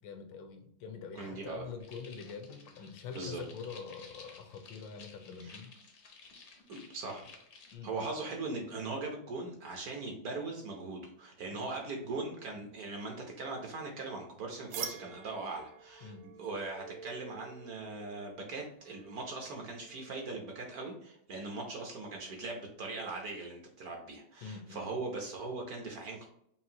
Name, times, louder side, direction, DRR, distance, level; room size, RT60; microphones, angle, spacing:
voice 1, 0.0-5.7 7.7-8.1 11.5-11.7 16.0-16.3 24.4-24.9, left 5 dB, 80° left, 6 dB, 1.3 m, -45 dB
voice 2, 1.2-1.7 3.1-3.4 5.4-5.5 6.7-7.3 7.8-16.1 16.4-26.3, right 3 dB, 60° right, 1 dB, 1.1 m, -40 dB
sound 1, 1.8-7.7, left 4 dB, 60° left, 0.7 m, -55 dB
sound 2, 14.7-20.3, right 7 dB, 85° right, 1.3 m, -47 dB
5.5 x 2.5 x 2.7 m, 0.71 s
omnidirectional pair, 2.1 m